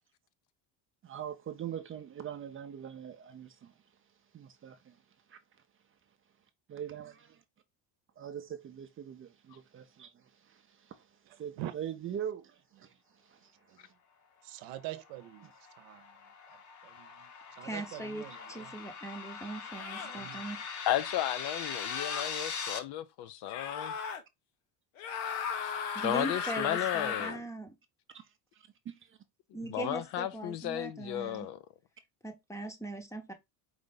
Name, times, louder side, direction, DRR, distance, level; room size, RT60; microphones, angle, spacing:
voice 1, 1.0-3.7 4.3-5.0 5.3-5.4 6.7-7.2 8.2-11.1 11.4-13.9 28.1-28.3 28.5-29.2, right 9 dB, 30° right, 0.5 m, -43 dB
voice 2, 11.3-11.7 13.7-13.8 14.4-15.5 15.8-16.2 16.5-16.6 16.8-18.7 20.0-20.4, right 14 dB, 70° right, 0.8 m, -45 dB
sound 1, 15.1-22.8, left 6 dB, 40° left, 0.9 m, -41 dB
voice 3, 17.6-20.6 25.9-27.7 29.5-31.5 32.2-33.3, right 1 dB, 5° left, 0.8 m, -40 dB
sound 2, 18.3-18.5 19.7-20.2 21.6-22.3 23.5-24.2 25.0-27.4, left 7 dB, 85° left, 1.1 m, -36 dB
voice 4, 20.9-23.9 26.0-27.4 29.7-31.6, left 12 dB, 60° left, 0.6 m, -34 dB
4.9 x 2.6 x 3.8 m
cardioid pair, 130°, 46 cm